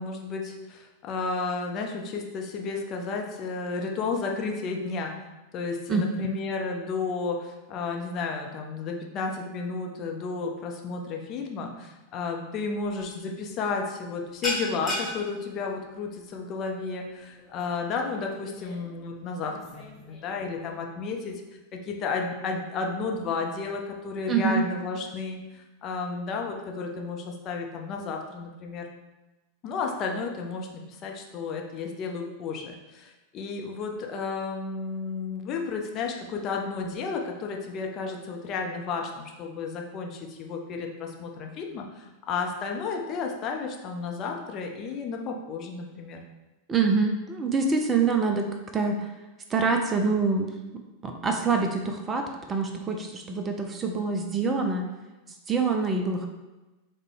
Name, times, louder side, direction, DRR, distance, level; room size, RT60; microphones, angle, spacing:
voice 1, 0.0-5.1 5.5-21.4 21.7-28.9 29.6-46.2, left 4 dB, 35° left, 2 dB, 0.6 m, -32 dB
voice 2, 5.9-6.3 24.3-24.6 46.7-49.1 49.5-50.6 51.0-54.9 55.5-56.3, right 4 dB, 20° right, 4 dB, 0.4 m, -25 dB
sound 1, 12.8-13.1 13.4-13.7 13.9-20.8, left 1 dB, 10° left, 1.1 m, -37 dB
5.0 x 2.2 x 3.3 m, 1.1 s
figure-of-eight pair, 90°, 0 cm